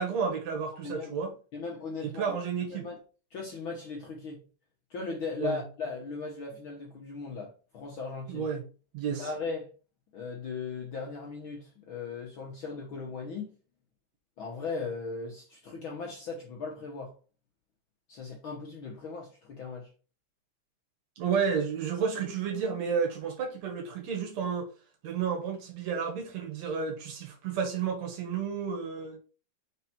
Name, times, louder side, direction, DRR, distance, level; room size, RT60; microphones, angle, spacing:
voice 1, 0.0-1.3 2.0-2.9 5.4-5.6 8.3-8.6 8.9-9.3 21.2-24.7 25.0-29.2, right 6 dB, 65° right, 2.5 m, -31 dB
voice 2, 1.5-2.4 2.7-3.0 3.3-4.4 4.9-8.5 9.1-9.7 10.1-13.5 14.4-17.1 18.1-19.9, left 4 dB, 60° left, 1.4 m, -38 dB
4.9 x 4.5 x 4.3 m
omnidirectional pair, 3.4 m